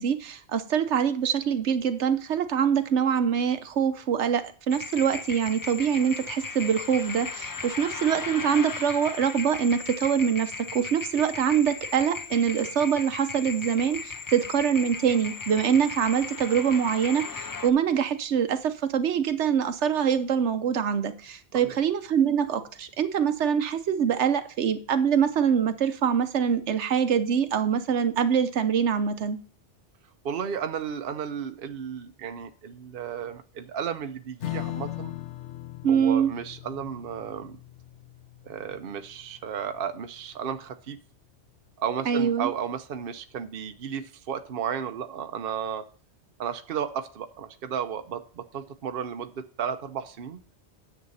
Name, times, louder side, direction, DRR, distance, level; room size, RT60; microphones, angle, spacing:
voice 1, 0.0-29.4 35.8-36.3 42.1-42.5, right 7 dB, 85° right, 1.1 m, -24 dB
sound 1, 4.7-17.7, left 5 dB, 35° left, 0.3 m, -37 dB
voice 2, 30.2-35.1 35.9-37.6 38.4-41.0 41.8-45.8 46.4-50.4, right 8 dB, 60° right, 0.9 m, -33 dB
Strum, 34.4-41.3, left 16 dB, 90° left, 1.0 m, -40 dB
9.6 x 7.4 x 4.1 m
omnidirectional pair, 1.1 m